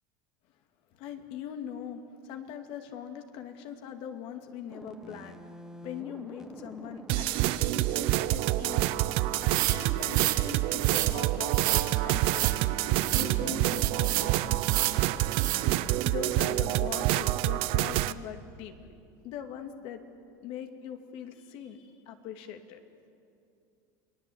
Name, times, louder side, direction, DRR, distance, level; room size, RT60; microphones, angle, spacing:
voice 1, 0.9-5.4 5.8-8.9 9.5-12.5 13.1-14.5 16.0-18.9 19.2-20.0 20.4-22.8, left 9 dB, 60° left, 6 dB, 2.4 m, -41 dB
sound 1, 4.7-16.0, equal, 5° right, 1.6 m, -47 dB
sound 2, 7.1-18.1, right 17 dB, 60° right, 0.7 m, -27 dB
sound 3, 9.4-10.4 10.8-11.1 11.5-11.9 12.2-12.6 13.0-13.3 13.7-14.3 14.6-15.0 15.3-15.6, right 16 dB, 80° right, 1.5 m, -30 dB
28.0 x 19.5 x 8.7 m, 2.6 s
supercardioid pair, 120°, 10 cm